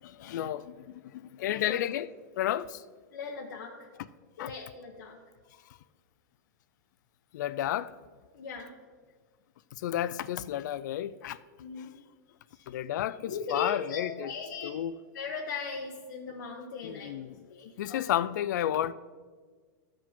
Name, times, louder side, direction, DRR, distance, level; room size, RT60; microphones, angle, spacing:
voice 1, 0.0-2.1 2.4-2.8 4.4-4.5 7.3-7.9 9.7-11.4 11.8-11.9 12.7-14.3 14.6-14.9 16.8-17.4 17.8-18.9, left 12 dB, 65° left, 0.4 m, -32 dB
voice 2, 1.4-1.8 3.1-3.9 4.4-5.2 8.3-8.7 11.6-12.0 12.5-12.6 13.2-14.8 15.1-17.1 17.5-18.0, left 5 dB, 85° left, 1.0 m, -39 dB
14.0 x 4.9 x 3.7 m
supercardioid pair, 160°, 10 cm